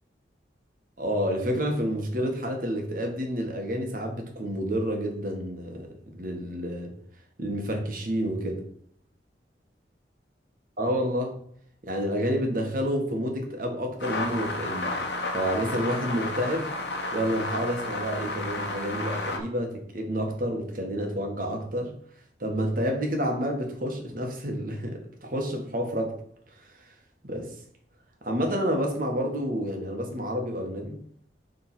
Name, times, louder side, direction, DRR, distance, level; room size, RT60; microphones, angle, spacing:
voice 1, 1.0-5.9 6.1-6.9 7.4-8.6 10.8-11.4 11.8-14.9 15.3-16.7 17.1-22.0 22.4-26.2 26.6-26.7 27.2-27.5 28.2-31.0, equal, 50° right, 1.6 m, -29 dB
sound 1, 14.0-19.4, left 2 dB, 75° left, 1.2 m, -32 dB
7.2 x 3.8 x 6.0 m
head